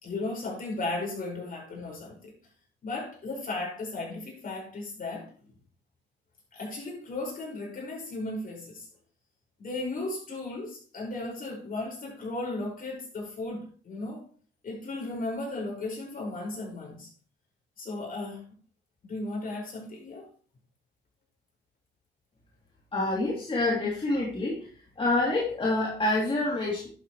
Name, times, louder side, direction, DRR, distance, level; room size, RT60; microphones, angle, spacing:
voice 1, 0.0-2.3 2.8-5.5 6.5-8.9 9.6-14.2 14.6-17.1 17.8-18.4 19.0-20.3, left 2 dB, 45° left, -2 dB, 5.4 m, -35 dB
voice 2, 22.9-24.6 25.0-26.9, left 2 dB, 25° left, -5 dB, 2.9 m, -27 dB
11.0 x 7.9 x 3.1 m, 0.42 s
cardioid pair, 90°, 20 cm